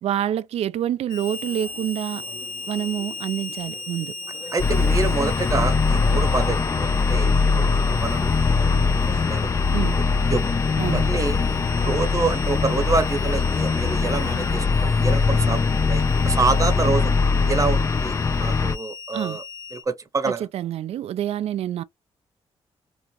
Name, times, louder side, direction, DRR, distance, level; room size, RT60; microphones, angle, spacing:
voice 1, 0.0-2.2 2.7-4.2 9.7-10.0 10.8-11.1 19.1-19.4 20.2-21.8, right 11 dB, 70° right, 0.4 m, -27 dB
Harmonica, 1.1-19.8, left 4 dB, 10° left, 0.9 m, -37 dB
sound 1, 1.3-9.3, left 3 dB, 65° left, 1.2 m, -42 dB
voice 2, 4.5-8.3 9.2-9.5 10.3-10.5 10.8-11.4 11.8-17.1 17.5-19.4 19.7-20.5, right 4 dB, 30° right, 0.8 m, -27 dB
sound 2, 4.6-18.8, left 4 dB, 30° left, 0.4 m, -21 dB
2.7 x 2.4 x 3.1 m
cardioid pair, 75°, 11 cm